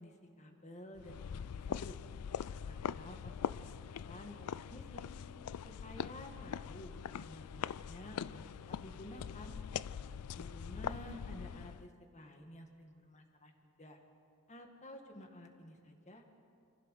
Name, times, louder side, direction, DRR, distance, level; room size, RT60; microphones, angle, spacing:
voice 1, 0.0-2.0 2.6-3.8 4.0-5.1 5.7-9.6 10.4-13.5 13.8-14.0 14.5-16.2, equal, 30° left, 4 dB, 1.9 m, -52 dB
sound 1, 1.0-11.9, left 7 dB, 90° left, 0.4 m, -42 dB
25.0 x 15.5 x 6.6 m, 2.4 s
head